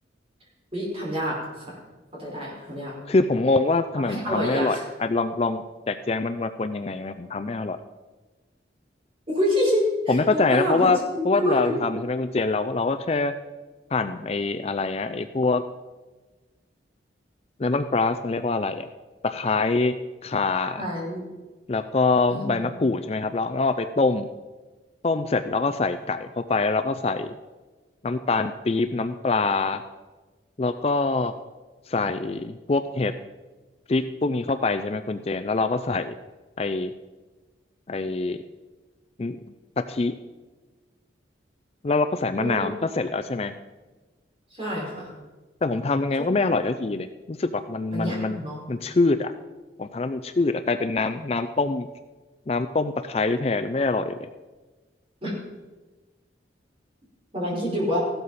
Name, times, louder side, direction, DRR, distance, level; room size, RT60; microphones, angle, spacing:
voice 1, 0.7-1.8 2.1-2.9 4.0-4.8 9.3-11.8 20.8-21.2 22.3-22.6 42.4-42.7 44.5-45.1 46.2-46.3 47.9-48.6 55.2-55.3 57.3-58.0, equal, 30° right, -5 dB, 5.1 m, -27 dB
voice 2, 3.1-7.8 10.1-11.0 11.2-13.4 13.9-15.6 17.6-18.9 19.2-20.0 20.2-20.9 21.7-24.3 25.0-27.4 28.0-29.8 30.6-31.3 31.9-33.2 33.9-36.1 36.6-36.9 37.9-38.4 39.2-39.4 39.9-40.2 41.8-43.5 45.6-48.4 48.7-49.3 49.8-51.9 52.5-54.3, left 3 dB, 35° left, 9 dB, 0.4 m, -24 dB
15.5 x 12.5 x 4.2 m, 1.3 s
head